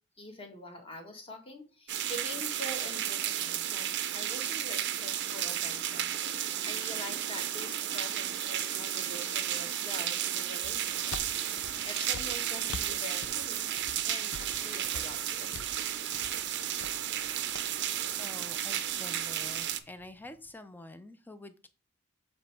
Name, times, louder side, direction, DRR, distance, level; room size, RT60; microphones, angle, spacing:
voice 1, 0.2-11.2 11.6-13.7 14.0-15.6, left 1 dB, 25° left, 3 dB, 1.3 m, -45 dB
sound 1, 1.9-19.8, right 11 dB, 55° right, 0.6 m, -33 dB
sound 2, 10.6-20.5, left 5 dB, 75° left, 0.6 m, -48 dB
voice 2, 18.2-21.7, left 1 dB, 10° left, 11 dB, 0.5 m, -47 dB
7.2 x 3.3 x 4.3 m, 0.33 s
head